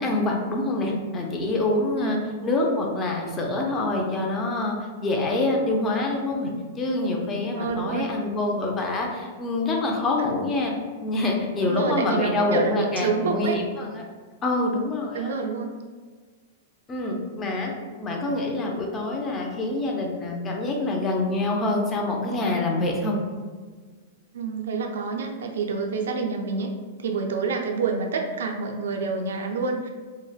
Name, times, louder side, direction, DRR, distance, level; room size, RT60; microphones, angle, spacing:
voice 1, 0.0-2.2 2.4-4.7 5.0-6.5 6.8-10.7 11.0-14.0 14.4-15.3 16.9-17.7 18.0-23.2, left 2 dB, 20° left, 0 dB, 0.4 m, -26 dB
voice 2, 7.6-8.1 10.2-10.3 11.6-13.6 15.1-15.7 24.3-26.7 27.0-29.9, right 4 dB, 85° right, 2 dB, 0.3 m, -28 dB
3.1 x 2.0 x 2.2 m, 1.5 s
supercardioid pair, 145°, 0 cm